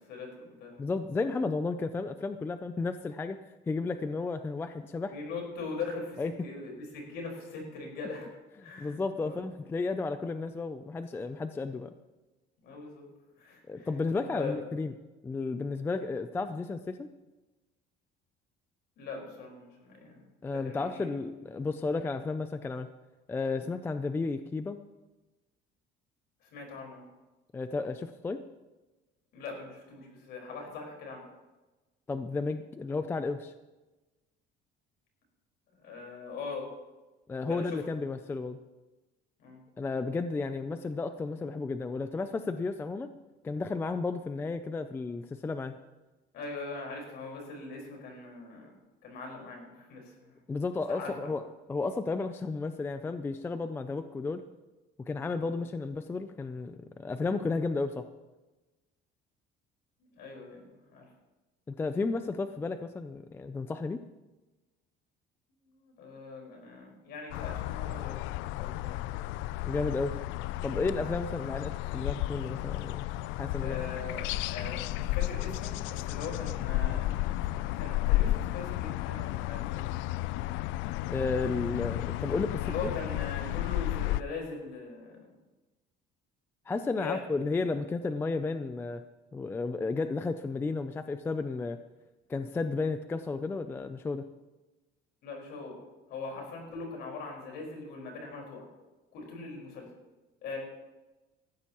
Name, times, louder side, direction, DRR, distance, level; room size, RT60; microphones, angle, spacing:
voice 1, 0.0-0.8 5.1-8.3 8.6-9.4 12.6-13.1 13.4-14.6 19.0-20.2 20.6-21.1 26.4-27.0 29.3-31.2 35.7-36.7 37.4-37.8 39.4-39.6 46.3-48.7 49.0-50.4 50.9-51.1 55.4-55.6 60.0-61.1 65.6-68.2 68.6-69.2 73.6-77.1 77.4-79.9 82.6-85.3 87.0-87.2 95.2-95.8 96.1-98.7 99.1-99.9 100.4-100.6, left 4 dB, 55° left, 0 dB, 4.7 m, -41 dB
voice 2, 0.8-3.4 3.7-5.2 6.2-6.3 8.6-11.9 13.7-14.9 15.2-17.1 20.4-22.9 23.3-24.8 27.5-28.5 32.1-33.5 37.3-38.6 39.8-43.1 43.4-45.8 50.5-51.4 51.7-54.4 55.1-58.1 61.7-64.0 69.7-70.2 70.6-73.0 73.4-73.8 81.1-82.7 86.7-89.0 89.3-91.8 92.3-94.3, left 3 dB, 10° left, 10 dB, 0.3 m, -33 dB
sound 1, 67.3-84.2, left 16 dB, 75° left, 0.4 m, -33 dB
19.0 x 14.5 x 3.0 m, 1.1 s
cardioid pair, 175°, 20 cm